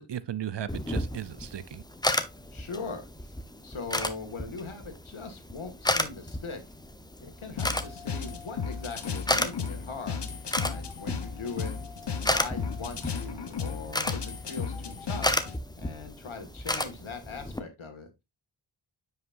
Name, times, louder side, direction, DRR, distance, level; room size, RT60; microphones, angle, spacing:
voice 1, 0.0-1.8, right 10 dB, 55° right, 0.6 m, -36 dB
sound 1, 0.7-17.6, left 1 dB, 10° left, 0.9 m, -33 dB
voice 2, 2.5-3.3 3.6-6.6 7.2-10.3 10.5-11.8 12.1-15.4 15.8-18.2, left 4 dB, 70° left, 2.0 m, -40 dB
sound 2, 7.6-15.6, left 6 dB, 55° left, 1.1 m, -35 dB
9.4 x 5.7 x 2.6 m
cardioid pair, 55°, 50 cm